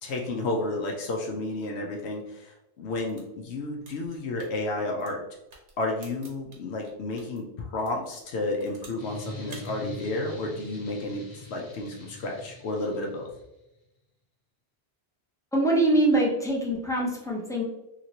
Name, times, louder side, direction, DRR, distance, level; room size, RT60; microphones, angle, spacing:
voice 1, 0.0-5.2 5.8-13.3, left 2 dB, 75° left, 0 dB, 0.9 m, -31 dB
sound 1, 3.0-7.4 7.8-9.1 9.4-9.7, right 3 dB, 80° right, 1.1 m, -51 dB
sound 2, 9.0-13.4, left 2 dB, 45° left, 0.9 m, -43 dB
voice 2, 15.5-17.6, right 1 dB, 5° left, -4 dB, 0.4 m, -23 dB
2.9 x 2.9 x 2.7 m, 0.91 s
omnidirectional pair, 1.1 m